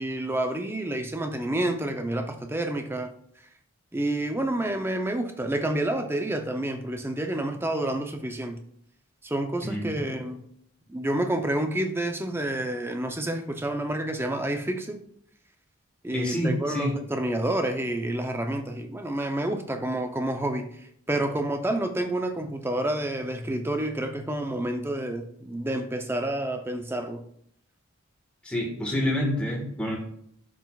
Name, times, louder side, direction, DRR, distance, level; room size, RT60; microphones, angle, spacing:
voice 1, 0.0-3.1 3.9-8.6 9.2-10.4 10.9-15.0 16.0-27.2, right 1 dB, 10° right, 6 dB, 0.6 m, -29 dB
voice 2, 16.1-16.9 28.4-30.0, left 1 dB, 5° left, -3 dB, 1.6 m, -27 dB
10.5 x 6.2 x 2.4 m, 0.70 s
head